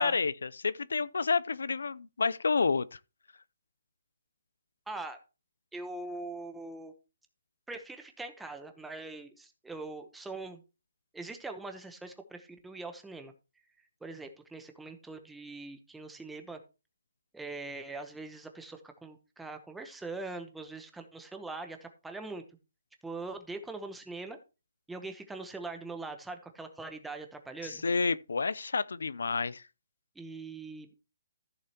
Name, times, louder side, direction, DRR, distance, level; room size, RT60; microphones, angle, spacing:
voice 1, 0.0-3.0 27.6-29.6, left 4 dB, 90° left, 0.5 m, -29 dB
voice 2, 4.9-5.2 5.7-6.9 7.7-10.6 11.1-13.3 14.0-16.6 17.3-22.4 23.0-24.4 24.9-27.8 30.1-30.9, right 3 dB, 5° right, 0.9 m, -42 dB
14.5 x 6.7 x 2.9 m
hypercardioid pair, 170°, 0 cm